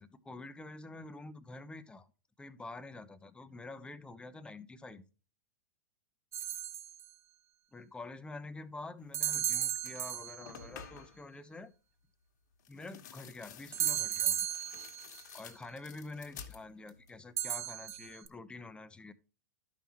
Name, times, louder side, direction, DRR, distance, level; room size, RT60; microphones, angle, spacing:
voice 1, 0.0-2.1 2.4-5.0 7.7-11.7 12.7-14.4 15.3-19.1, left 2 dB, 10° left, 11 dB, 0.9 m, -47 dB
sound 1, 6.3-7.0 9.1-10.6 13.7-15.2 17.4-18.3, right 11 dB, 25° right, 0.8 m, -35 dB
sound 2, 9.3-9.5 9.8-11.3 12.6-17.2 17.5-18.1, left 7 dB, 65° left, 1.6 m, -52 dB
12.5 x 5.5 x 3.0 m, 0.33 s
hypercardioid pair, 105°, 10 cm